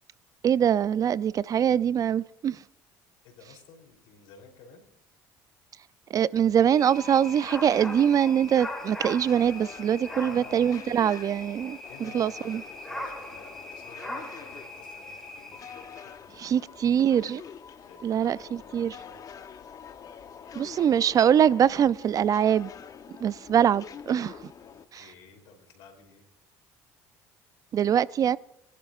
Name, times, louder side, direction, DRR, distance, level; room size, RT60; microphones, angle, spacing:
voice 1, 0.4-2.6 6.1-11.8 12.1-12.6 16.4-17.4 18.0-18.9 20.6-22.7 23.2-24.5 27.7-28.4, right 9 dB, 45° right, 0.3 m, -23 dB
voice 2, 3.2-4.9 10.1-10.9 11.9-16.8 17.8-19.4 20.3-21.1 24.6-26.2, left 5 dB, 75° left, 3.3 m, -53 dB
sound 1, 6.7-16.2, left 1 dB, 5° left, 3.3 m, -40 dB
sound 2, 6.9-24.9, left 7 dB, 45° left, 0.8 m, -46 dB
25.5 x 11.5 x 2.4 m
supercardioid pair, 80°, 9 cm